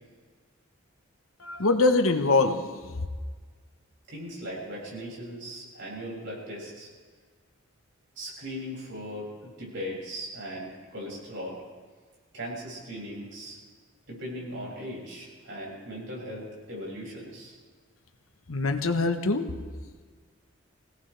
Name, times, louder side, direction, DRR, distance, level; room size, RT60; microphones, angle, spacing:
voice 1, 1.4-2.6 18.5-19.5, left 3 dB, 85° left, 7 dB, 1.2 m, -23 dB
voice 2, 4.1-6.9 8.2-11.6 12.3-13.6 14.1-17.5, equal, 65° right, -4 dB, 6.6 m, -38 dB
24.5 x 17.5 x 3.4 m, 1.5 s
head